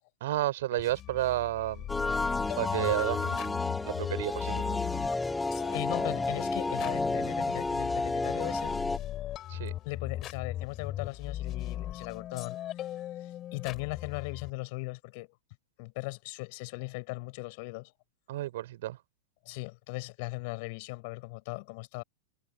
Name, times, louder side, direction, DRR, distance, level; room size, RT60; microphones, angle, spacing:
voice 1, 0.2-1.9 2.6-4.8 9.5-9.7 18.3-19.0, right 15 dB, 55° right, 4.5 m, -32 dB
sound 1, 0.8-14.5, left 13 dB, 30° left, 4.5 m, -39 dB
sound 2, 1.9-9.0, left 3 dB, 10° left, 2.4 m, -31 dB
voice 2, 5.7-8.7 9.8-12.6 13.5-15.3 15.8-17.9 19.4-22.0, left 28 dB, 45° left, 6.2 m, -38 dB
figure-of-eight pair, 95°, 0 cm